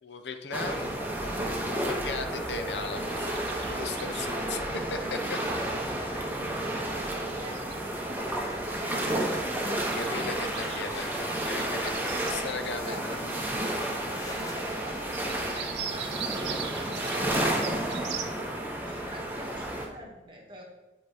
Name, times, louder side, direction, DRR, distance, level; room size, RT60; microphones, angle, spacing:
voice 1, 0.0-0.9 1.6-3.3 3.7-4.6 4.9-5.0 5.3-5.4 9.9-13.2, left 4 dB, 85° left, 7 dB, 0.8 m, -37 dB
sound 1, 0.5-19.9, right 1 dB, 10° right, 1.0 m, -31 dB
sound 2, 2.9-5.0 5.3-5.9 6.5-7.2 7.5-8.6 8.9-9.0 9.3-12.4 12.8-12.9 13.1-13.2 13.7-13.8 14.7-14.8 15.0-18.4, right 9 dB, 80° right, 0.6 m, -42 dB
sound 3, 3.5-4.0 4.4-4.8 7.8-9.1 9.9-11.5 12.2-16.1, left 2 dB, 20° left, 0.6 m, -48 dB
voice 2, 4.3-9.4 12.3-13.5 14.2-17.7 18.0-20.6, equal, 30° right, 0 dB, 1.5 m, -45 dB
9.4 x 4.3 x 5.0 m, 1.1 s
head